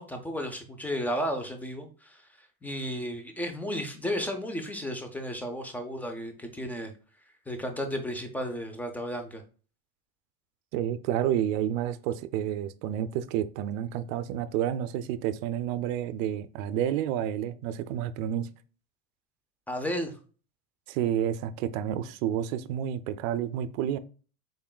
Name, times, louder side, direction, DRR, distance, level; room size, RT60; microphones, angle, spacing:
voice 1, 0.0-6.9 7.5-9.4 19.7-20.1, equal, 5° left, 0.4 m, -33 dB
voice 2, 10.7-18.5 20.9-24.0, right 10 dB, 65° right, 0.5 m, -30 dB
3.8 x 3.6 x 2.2 m
supercardioid pair, 110°, 44 cm